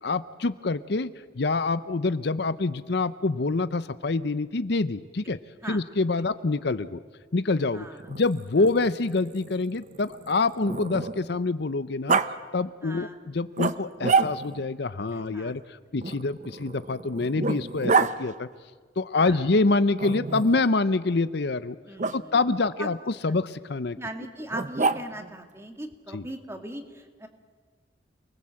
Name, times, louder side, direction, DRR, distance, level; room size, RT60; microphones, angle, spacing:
voice 1, 0.0-5.4 5.7-7.0 7.3-12.2 12.5-18.5 19.0-21.8 22.1-24.0 26.1-26.2, left 3 dB, 60° left, 14 dB, 0.7 m, -26 dB
Growling, 8.0-11.4 12.1-12.3 13.6-14.7 16.0-18.1 20.0-20.7 22.0-22.2 24.5-25.3, right 4 dB, 40° right, 0.8 m, -28 dB
voice 2, 12.8-13.2 15.1-15.6 19.2-19.4 21.9-22.9 23.9-27.3, right 1 dB, 15° right, 5 dB, 2.1 m, -39 dB
28.5 x 20.5 x 7.7 m, 1.5 s
head